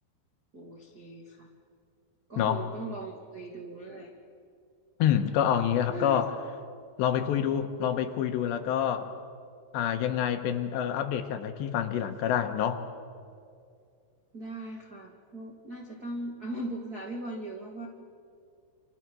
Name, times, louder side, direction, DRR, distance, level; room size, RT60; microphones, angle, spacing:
voice 1, 0.5-1.5 2.3-4.1 5.9-6.2 14.3-17.9, right 2 dB, 65° right, 0 dB, 0.9 m, -39 dB
voice 2, 5.0-6.3 7.0-9.1 9.7-12.8, left 9 dB, 75° left, 7 dB, 3.2 m, -27 dB
28.5 x 26.5 x 6.2 m, 2.3 s
omnidirectional pair, 5.4 m